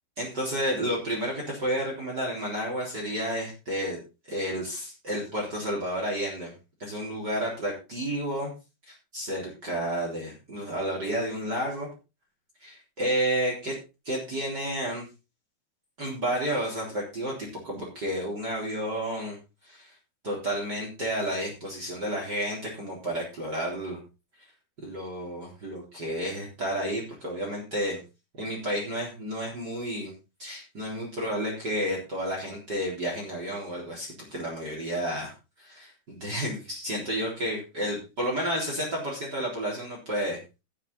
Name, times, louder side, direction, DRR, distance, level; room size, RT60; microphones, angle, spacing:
voice 1, 0.2-4.0 4.3-6.5 6.8-8.5 8.9-11.9 12.6-13.7 14.0-15.1 16.0-17.3 17.6-19.4 19.6-19.9 20.2-24.0 24.8-28.0 28.4-30.1 30.4-35.3 35.6-40.4, equal, 25° right, -2 dB, 4.2 m, -31 dB
13.5 x 9.3 x 4.1 m, 0.29 s
omnidirectional pair, 4.5 m